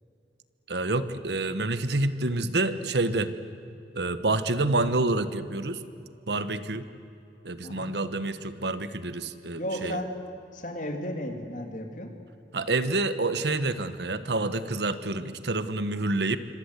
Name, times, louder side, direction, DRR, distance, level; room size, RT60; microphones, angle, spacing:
voice 1, 0.7-3.3 3.9-5.8 6.3-6.9 7.4-10.0 12.5-16.4, right 2 dB, 75° right, 12 dB, 1.3 m, -28 dB
voice 2, 7.6-7.9 9.6-10.1 10.5-12.1, equal, 45° left, 4 dB, 3.0 m, -34 dB
26.5 x 25.5 x 8.2 m, 2.7 s
head